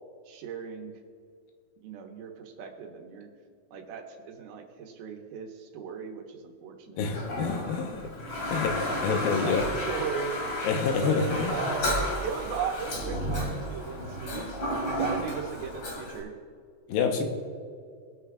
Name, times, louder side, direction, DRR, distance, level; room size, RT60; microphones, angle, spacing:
voice 1, 0.3-0.9 1.8-3.3 3.7-7.0 7.5-7.8 8.7-10.4 11.0-11.9 12.2-14.5 14.8-16.3, right 7 dB, 85° right, 2 dB, 3.0 m, -37 dB
voice 2, 7.0-8.1 8.5-9.6 10.6-11.7 16.9-17.3, left 5 dB, 80° left, 3 dB, 2.7 m, -28 dB
Toilet flush, 7.1-16.2, equal, 40° left, 2.5 m, -32 dB
21.5 x 8.4 x 2.4 m, 2.3 s
omnidirectional pair, 4.3 m